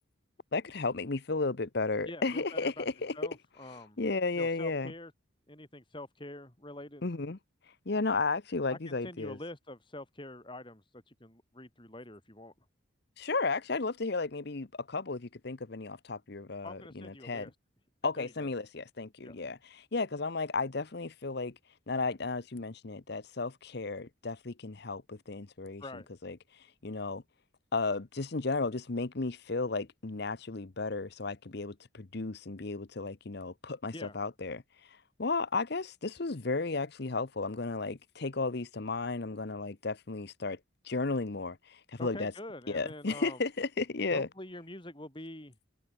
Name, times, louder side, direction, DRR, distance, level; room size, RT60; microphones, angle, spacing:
voice 1, 0.5-3.2 3.7-4.9 7.0-7.4 7.9-9.4 13.2-17.5 18.0-21.5 21.9-26.4 26.8-27.2 27.7-34.6 35.2-40.6 40.8-42.3 42.7-44.3, left 3 dB, 55° left, 0.9 m, -34 dB
voice 2, 2.1-2.9 3.1-4.0 4.4-5.1 5.5-7.0 8.7-12.5 16.6-17.5 18.2-18.5 19.2-19.4 25.8-26.1 33.9-34.2 42.0-43.4 44.1-45.5, left 1 dB, 25° left, 4.0 m, -45 dB
head